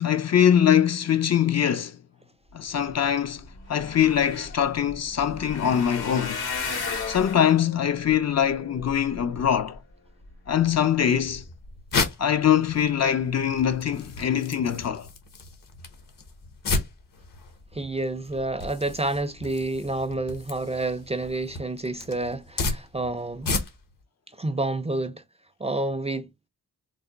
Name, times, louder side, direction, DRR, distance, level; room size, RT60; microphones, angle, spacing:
voice 1, 0.0-2.0 2.5-6.5 7.1-9.8 10.5-11.4 12.2-15.1, left 9 dB, 45° left, 0.5 m, -23 dB
sound 1, 3.4-9.8 10.3-10.7 11.2-11.4 11.6-11.7, left 4 dB, 80° left, 1.8 m, -35 dB
sound 2, 11.2-24.0, left 3 dB, 60° left, 1.0 m, -34 dB
voice 2, 17.7-23.5 24.4-25.2 25.6-26.3, right 2 dB, 20° right, 0.4 m, -29 dB
3.3 x 2.1 x 3.8 m
cardioid pair, 60°, 37 cm